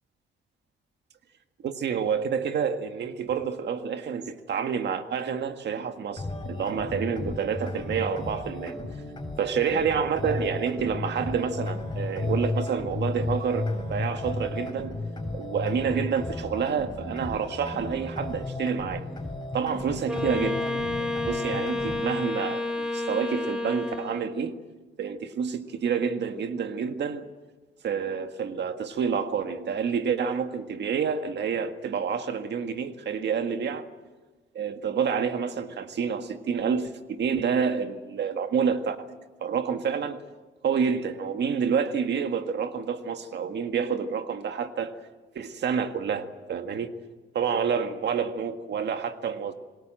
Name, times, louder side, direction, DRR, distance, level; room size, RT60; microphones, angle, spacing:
voice 1, 1.6-8.8 9.4-15.0 15.3-19.0 19.5-20.6 21.0-24.6 25.0-27.3 27.8-33.9 34.5-39.0 39.4-40.2 40.6-44.9 45.4-47.0 47.3-49.5, right 6 dB, 60° right, 1.8 m, -28 dB
sound 1, 6.2-22.2, left 2 dB, 20° left, 7.1 m, -34 dB
Wind instrument woodwind instrument, 20.1-24.4, left 2 dB, 5° right, 4.0 m, -30 dB
27.5 x 21.0 x 7.7 m
cardioid pair, 90°, 20 cm